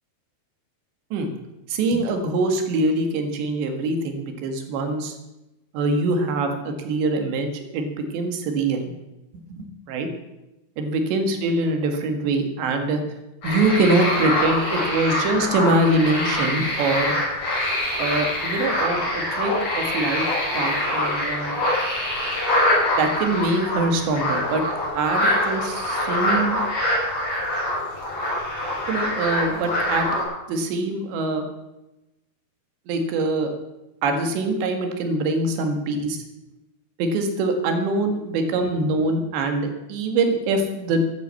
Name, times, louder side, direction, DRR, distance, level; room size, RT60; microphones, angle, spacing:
voice 1, 1.7-5.2 5.7-8.8 9.5-10.1 10.8-13.0 13.4-17.1 18.0-20.3 20.5-21.6 23.0-24.6 24.9-26.6 28.9-30.2 30.5-31.4 32.9-33.5 34.0-36.2 37.0-41.0, right 2 dB, 80° right, 5 dB, 4.0 m, -24 dB
sound 1, 13.4-30.2, left 1 dB, 35° left, 6.7 m, -24 dB
14.0 x 10.5 x 7.6 m, 0.97 s
omnidirectional pair, 5.0 m